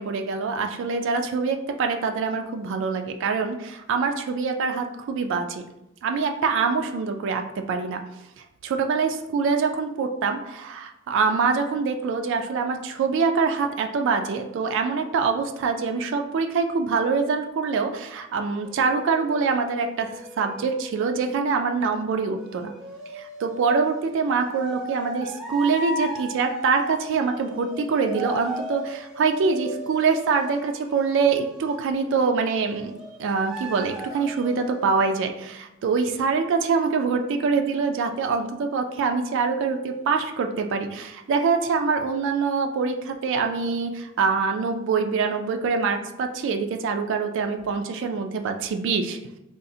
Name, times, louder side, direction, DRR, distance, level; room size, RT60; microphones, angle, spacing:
voice 1, 0.0-5.6 6.0-8.0 8.6-20.1 20.4-22.7 23.1-32.9 33.2-49.2, right 5 dB, 60° right, 5 dB, 0.3 m, -24 dB
sound 1, 18.6-21.4 22.3-31.9 32.4-35.0, right 1 dB, 5° right, 0.5 m, -37 dB
3.7 x 2.0 x 2.6 m, 0.90 s
head